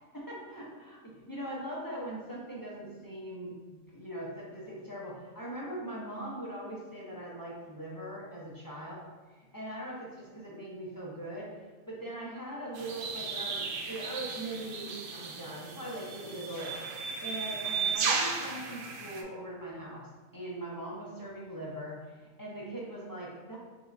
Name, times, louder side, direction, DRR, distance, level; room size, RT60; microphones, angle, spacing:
voice 1, 0.1-9.0 9.4-23.6, right 1 dB, 35° left, -6 dB, 0.3 m, -41 dB
sound 1, 12.7-19.2, right 5 dB, 65° right, 0.5 m, -35 dB
4.2 x 3.3 x 2.5 m, 1.3 s
omnidirectional pair, 1.4 m